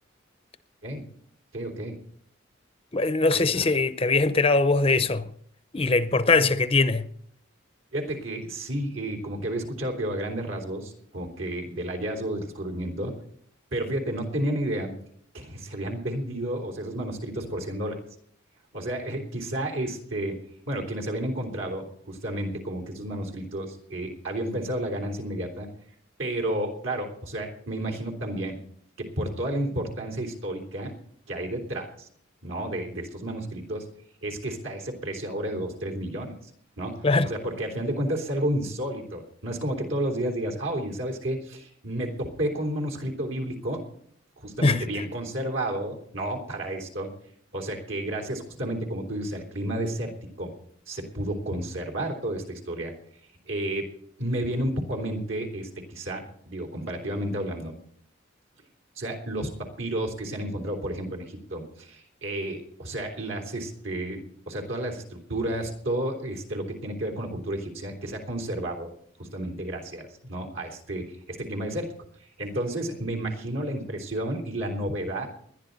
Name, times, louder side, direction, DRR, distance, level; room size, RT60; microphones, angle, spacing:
voice 1, 1.5-2.0 3.3-3.7 6.4-6.5 7.9-13.1 13.7-14.9 15.3-18.0 18.7-20.4 20.7-25.7 26.2-28.6 29.0-30.9 31.3-32.1 32.4-33.9 34.2-36.3 36.8-43.8 44.4-47.1 47.5-50.1 50.4-50.5 50.9-52.9 53.5-53.9 54.2-57.7 59.0-68.9 69.2-71.9 72.4-75.3, right 1 dB, 70° right, 3.5 m, -31 dB
voice 2, 2.9-5.3 5.7-7.1 37.0-37.3 44.6-44.8, left 3 dB, 30° left, 0.6 m, -21 dB
21.0 x 11.5 x 4.0 m
head